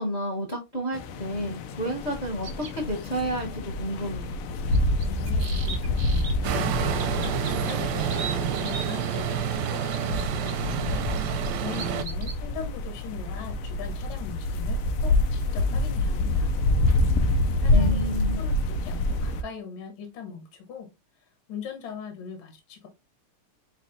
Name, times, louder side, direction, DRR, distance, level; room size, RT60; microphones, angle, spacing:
voice 1, 0.0-4.3 17.6-18.4, right 1 dB, 40° left, 0.6 m, -31 dB
sound 1, 0.9-19.4, left 2 dB, 90° left, 1.5 m, -27 dB
sound 2, 2.4-2.7 4.7-6.3 7.0-8.9 9.6-10.5 11.2-12.4, right 5 dB, 55° right, 0.7 m, -38 dB
voice 2, 5.0-16.5 17.6-20.9 21.2-22.9, left 6 dB, 70° left, 1.8 m, -41 dB
sound 3, 6.4-12.0, right 7 dB, 75° right, 1.1 m, -28 dB
4.5 x 4.1 x 2.6 m
omnidirectional pair, 2.4 m